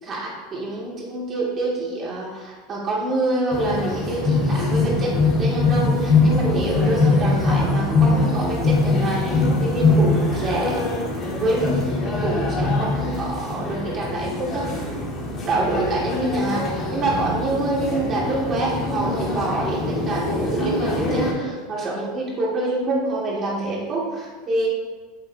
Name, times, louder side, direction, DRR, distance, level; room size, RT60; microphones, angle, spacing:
voice 1, 0.0-10.8 11.4-14.7 15.4-16.6 16.9-24.7, right 2 dB, 30° right, -4 dB, 2.4 m, -26 dB
sound 1, 3.5-21.3, left 3 dB, 30° left, 2.0 m, -22 dB
8.8 x 7.1 x 2.8 m, 1.4 s
supercardioid pair, 145°, 0 cm